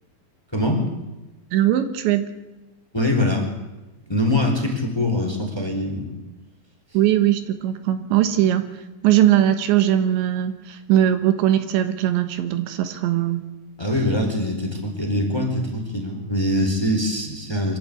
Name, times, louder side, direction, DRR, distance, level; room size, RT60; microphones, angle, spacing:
voice 1, 0.5-0.8 2.9-3.5 4.1-6.1 13.8-17.8, left 1 dB, 5° left, 3 dB, 3.2 m, -23 dB
voice 2, 1.5-2.3 6.9-8.7 9.0-13.4, right 12 dB, 75° right, 9 dB, 3.5 m, -20 dB
25.0 x 14.0 x 8.6 m, 1.1 s
omnidirectional pair, 5.3 m